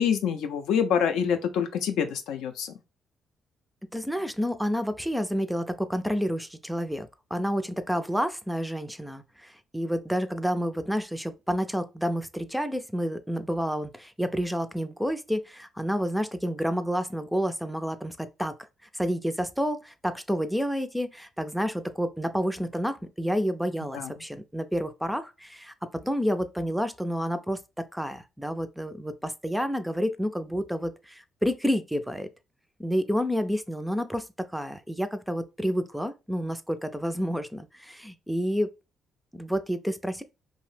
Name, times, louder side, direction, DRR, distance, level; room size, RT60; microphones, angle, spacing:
voice 1, 0.0-2.7 23.9-24.1, left 7 dB, 85° left, 0.4 m, -26 dB
voice 2, 3.9-18.5 18.9-25.7 26.0-32.3 32.8-38.7 39.3-40.2, equal, ahead, 0.3 m, -29 dB
2.7 x 2.0 x 3.1 m
cardioid pair, 90°, 0 cm